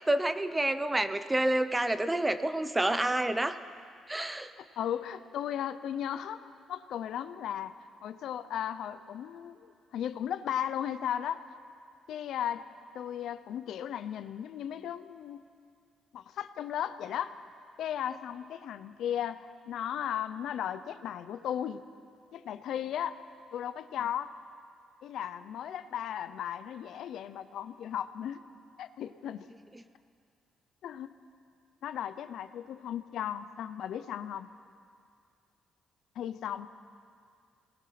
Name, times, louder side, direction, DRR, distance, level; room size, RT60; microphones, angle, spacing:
voice 1, 0.0-3.6 4.1-4.5, right 1 dB, 15° right, 11 dB, 1.0 m, -28 dB
voice 2, 4.6-7.7 8.0-11.4 12.1-12.7 12.9-15.4 16.1-17.3 17.8-21.8 22.3-23.2 23.5-24.3 25.0-28.4 28.8-29.5 30.8-31.1 31.8-34.5 36.2-36.7, left 10 dB, 75° left, 11 dB, 0.8 m, -36 dB
23.0 x 20.0 x 6.0 m, 2.3 s
cardioid pair, 90°, 0 cm